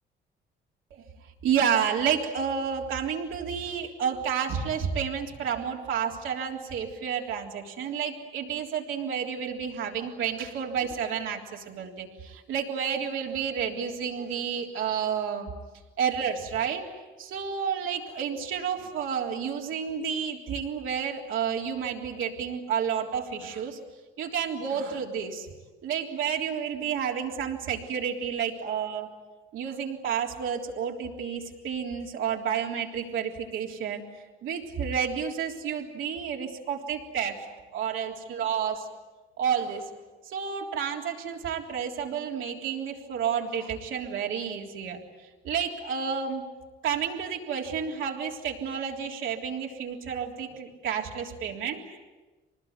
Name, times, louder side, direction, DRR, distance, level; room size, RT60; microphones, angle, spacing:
voice 1, 1.4-15.5 16.0-16.9 17.2-23.8 24.2-25.5 25.8-29.1 29.5-34.0 34.4-38.9 39.4-39.9 40.2-45.0 45.4-46.4 46.8-52.0, right 7 dB, 85° right, 0 dB, 3.6 m, -30 dB
25.5 x 20.0 x 9.6 m, 1.2 s
cardioid pair, 90°, 20 cm